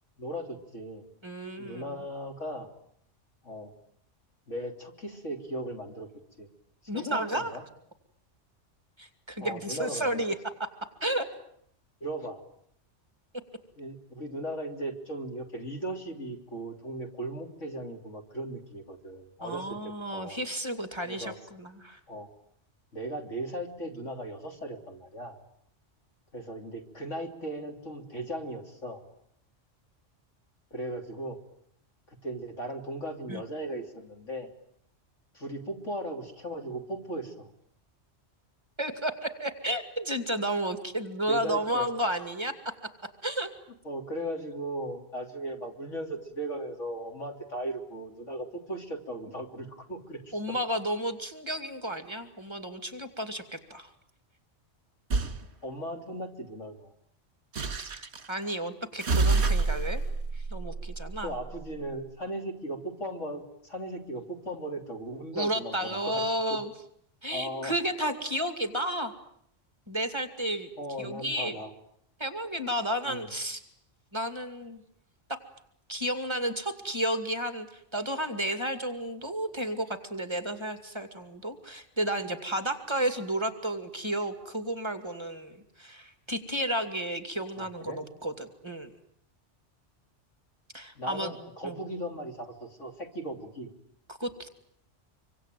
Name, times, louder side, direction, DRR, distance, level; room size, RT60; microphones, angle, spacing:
voice 1, 0.2-1.1 1.6-2.7 3.4-3.7 4.5-6.1 6.4-6.5 6.9-7.6 9.4-10.2 12.0-12.4 13.8-20.4 21.0-21.4 22.1-22.3 22.9-25.4 26.3-29.0 30.7-31.4 32.1-34.5 35.3-37.5 41.2-41.9 43.9-50.6 55.6-56.9 61.2-66.6 67.3-67.7 70.8-71.7 73.1-73.3 87.6-88.0 91.0-93.7, right 1 dB, 85° left, 4 dB, 3.6 m, -37 dB
voice 2, 1.2-2.0 6.9-7.5 9.0-10.3 10.6-10.7 11.0-11.3 19.4-22.0 33.3-33.4 38.8-42.7 43.2-43.5 50.3-53.9 57.8-57.9 58.3-60.0 60.3-61.3 65.3-66.7 67.2-69.1 69.9-70.7 71.0-71.6 72.2-73.6 74.1-74.8 75.3-75.4 75.9-88.9 90.7-91.3 91.6-91.8 94.2-94.5, right 1 dB, 20° right, 9 dB, 2.5 m, -32 dB
sound 1, 55.1-55.4 57.5-58.3 59.0-61.6, right 3 dB, 65° right, 1.9 m, -28 dB
26.0 x 25.0 x 9.2 m, 0.70 s
omnidirectional pair, 1.2 m